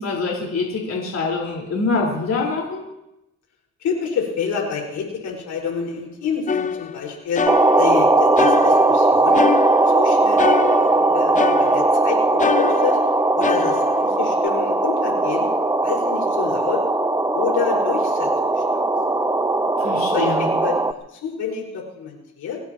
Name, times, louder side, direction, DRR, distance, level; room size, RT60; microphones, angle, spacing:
voice 1, 0.0-2.8 19.8-20.4, left 3 dB, 60° left, -2 dB, 4.8 m, -24 dB
voice 2, 3.8-7.4 7.8-9.5 9.8-10.4 10.8-13.0 13.4-15.5 15.8-16.8 17.3-18.6 20.1-22.6, left 6 dB, 75° left, 0 dB, 5.5 m, -28 dB
sound 1, 6.5-8.1 8.4-10.1 10.4-12.0 12.4-14.5, left 6 dB, 25° left, 0.5 m, -25 dB
sound 2, 7.5-20.9, right 2 dB, 10° right, 0.8 m, -19 dB
24.0 x 17.5 x 3.1 m, 0.91 s
cardioid pair, 90°, 30 cm